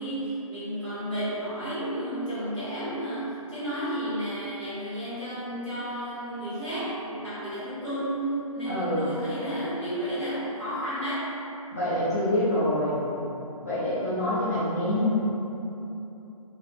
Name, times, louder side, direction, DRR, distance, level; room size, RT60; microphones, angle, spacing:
voice 1, 0.0-11.4, right 1 dB, 5° right, -18 dB, 0.8 m, -32 dB
voice 2, 8.7-9.1 11.7-13.1 13.6-15.2, left 1 dB, 25° left, -12 dB, 0.5 m, -26 dB
2.9 x 2.8 x 3.3 m, 3.0 s
hypercardioid pair, 170°, 19 cm